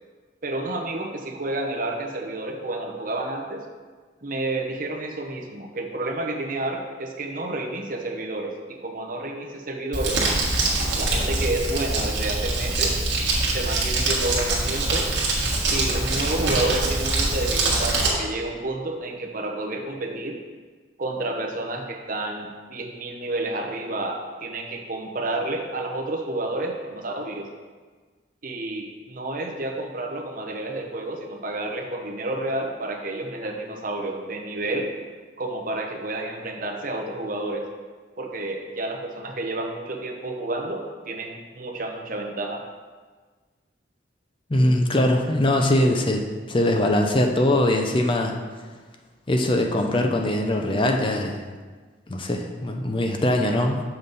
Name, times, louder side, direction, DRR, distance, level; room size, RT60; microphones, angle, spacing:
voice 1, 0.4-3.6 4.2-10.2 10.9-12.9 13.5-15.1 15.7-20.4 21.0-27.5 28.4-34.9 35.4-37.6 38.2-42.6, right 2 dB, 45° right, 2 dB, 0.8 m, -30 dB
Crumpling crinkling, 9.9-18.1, right 2 dB, 70° right, 1.5 m, -24 dB
voice 2, 44.5-48.4 49.3-51.4 52.1-53.8, left 1 dB, 25° left, 3 dB, 0.5 m, -22 dB
7.0 x 5.5 x 4.0 m, 1.4 s
head